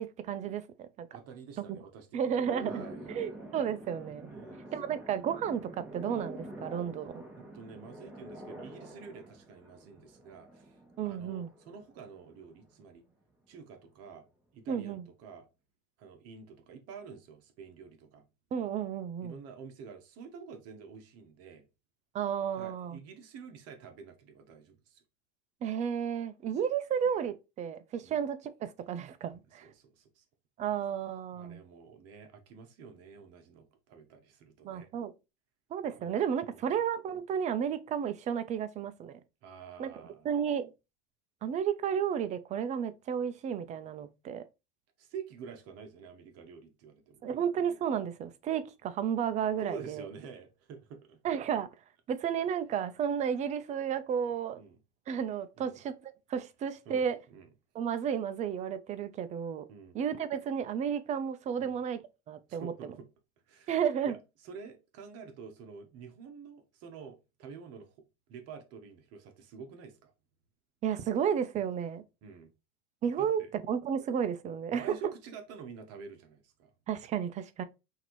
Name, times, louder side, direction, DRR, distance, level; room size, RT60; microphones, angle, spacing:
voice 1, 0.0-1.1 2.1-4.3 4.7-7.2 11.0-11.5 14.7-15.0 18.5-19.4 22.1-23.0 25.6-29.7 30.6-31.6 34.6-35.1 35.7-39.1 39.8-39.9 40.2-40.7 41.4-44.4 47.2-50.1 51.2-51.7 52.1-54.6 55.1-55.9 56.3-57.2 57.7-59.7 59.9-62.0 62.3-62.7 63.7-64.1 70.8-72.0 73.0-75.0 76.9-77.6, right 8 dB, 20° right, 0.3 m, -32 dB
voice 2, 1.1-3.3 4.3-5.0 7.4-10.8 11.0-13.0 13.5-14.2 14.5-15.5 16.0-18.2 19.2-21.6 22.5-25.0 28.0-28.2 29.6-30.2 31.3-34.9 36.0-36.2 36.5-36.7 39.4-40.3 45.0-47.4 49.6-51.2 54.6-54.8 55.6-55.8 56.9-57.0 57.3-57.5 59.7-60.0 61.6-61.8 62.5-63.1 63.5-63.7 64.0-64.2 64.4-68.0 68.3-70.1 72.2-72.5 73.2-73.5 74.7-76.7, right 5 dB, 45° right, 1.0 m, -48 dB
sound 1, 2.4-12.8, right 1 dB, 5° right, 1.1 m, -47 dB
5.7 x 2.7 x 3.0 m
supercardioid pair, 120°, 35 cm